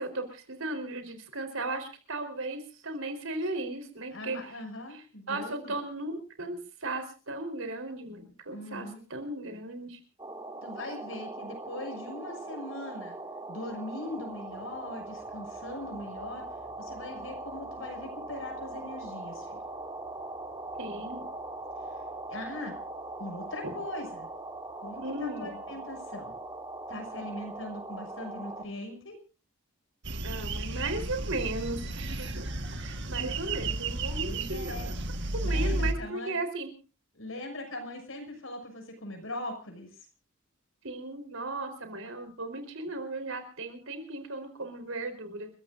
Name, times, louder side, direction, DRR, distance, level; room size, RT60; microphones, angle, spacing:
voice 1, 0.0-4.4 5.3-10.0 20.8-21.3 23.6-23.7 25.0-25.5 30.2-32.5 32.8-34.9 35.3-36.7 40.8-45.5, right 2 dB, 75° right, 7 dB, 4.1 m, -36 dB
voice 2, 4.1-5.7 8.5-9.1 10.6-13.1 13.5-16.5 16.8-19.6 22.3-22.8 23.2-24.3 24.8-26.3 26.9-29.2 34.2-34.9 35.4-36.4 37.1-40.1, left 1 dB, 70° left, 4 dB, 6.5 m, -40 dB
sound 1, 10.2-28.6, right 2 dB, 20° right, 2.3 m, -41 dB
sound 2, 30.0-35.9, right 2 dB, 60° right, 1.5 m, -33 dB
30.0 x 14.5 x 2.6 m, 0.36 s
head